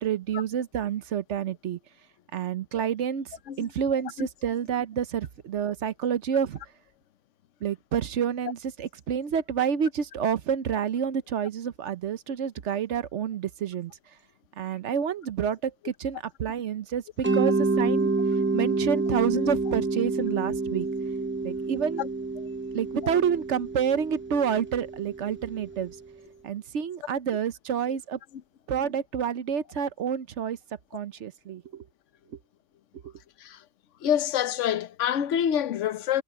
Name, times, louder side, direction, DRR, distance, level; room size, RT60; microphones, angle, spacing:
voice 1, 0.0-1.8 2.3-3.3 3.6-6.6 7.6-13.9 14.6-18.1 18.5-20.9 21.4-22.0 22.7-26.0 26.4-28.2 28.7-30.6 30.9-31.8 33.0-33.1, right 8 dB, 65° right, 1.1 m, -28 dB
Mallet percussion, 17.2-26.0, right 3 dB, 10° right, 0.7 m, -28 dB
voice 2, 34.0-36.2, left 9 dB, 65° left, 1.1 m, -26 dB
omnidirectional pair, 1.4 m